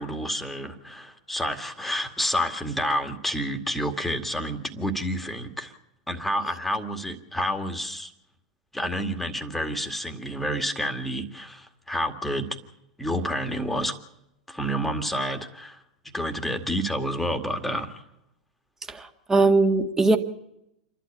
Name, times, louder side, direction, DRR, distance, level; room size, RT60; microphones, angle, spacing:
voice 1, 0.0-5.7 6.1-8.1 8.7-12.5 13.0-13.9 14.5-15.8 16.1-18.0, equal, 5° left, 6 dB, 2.1 m, -29 dB
voice 2, 18.9-20.2, right 3 dB, 10° right, 5 dB, 1.9 m, -20 dB
28.5 x 12.0 x 8.6 m, 0.84 s
figure-of-eight pair, 95°, 4 cm